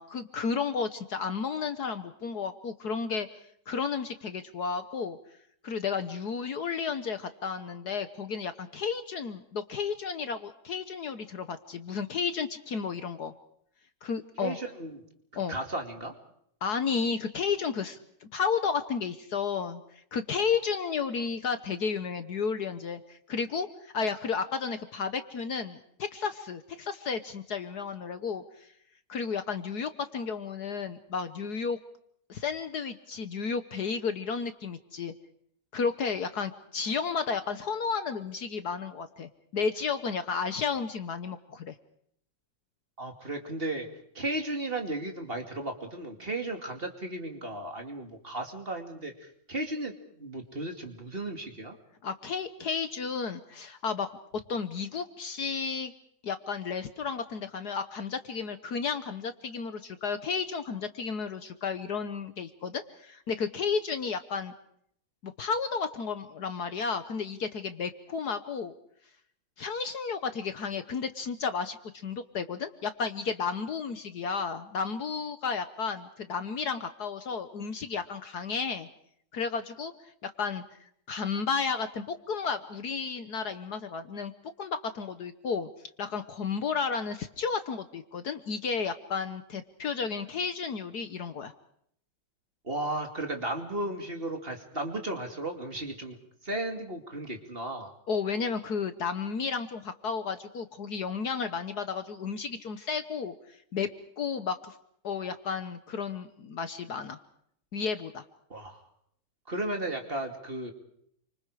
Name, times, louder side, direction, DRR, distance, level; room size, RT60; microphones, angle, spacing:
voice 1, 0.0-5.2 5.6-13.3 14.0-14.6 15.3-15.6 16.6-28.7 29.1-31.8 32.3-35.1 35.7-41.7 52.0-54.1 54.5-55.9 56.2-64.5 65.2-68.7 69.6-71.8 72.0-78.9 79.3-84.3 84.6-85.7 86.0-91.5 98.1-103.9 104.2-104.7 105.0-107.2 107.7-108.2, left 5 dB, 60° left, 10 dB, 1.5 m, -32 dB
voice 2, 14.4-15.0 15.5-16.1 43.0-43.9 44.1-49.9 50.2-51.8 92.6-96.2 96.4-97.9 108.5-108.8 109.5-110.7, right 1 dB, 30° right, 3 dB, 2.6 m, -35 dB
28.5 x 25.5 x 4.9 m, 0.70 s
omnidirectional pair, 2.1 m